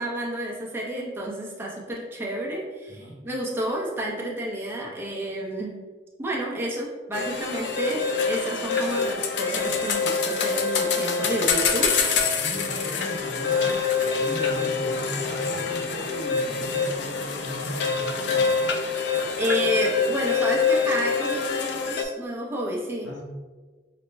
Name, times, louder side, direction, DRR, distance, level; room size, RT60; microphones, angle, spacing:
voice 1, 0.0-5.8 6.2-11.9 19.4-23.1, right 1 dB, 10° right, -4 dB, 0.6 m, -30 dB
voice 2, 2.9-3.2 12.2-18.6 23.0-23.2, equal, 80° left, -3 dB, 0.9 m, -37 dB
sound 1, 7.1-22.0, left 5 dB, 65° left, 0.4 m, -25 dB
5.0 x 2.1 x 3.3 m, 1.3 s
head